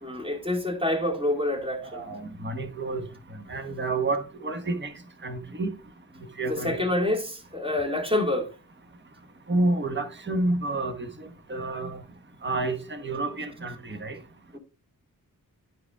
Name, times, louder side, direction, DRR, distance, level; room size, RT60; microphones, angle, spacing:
voice 1, 0.0-2.0 6.5-8.5 14.5-14.6, left 1 dB, 15° right, 2.2 m, -27 dB
voice 2, 1.9-3.0 3.5-4.9 5.2-5.7 6.4-6.8 9.5-12.0 12.4-14.2, right 2 dB, 30° right, 1.2 m, -29 dB
11.0 x 4.8 x 3.6 m
wide cardioid pair, 95°, 35 cm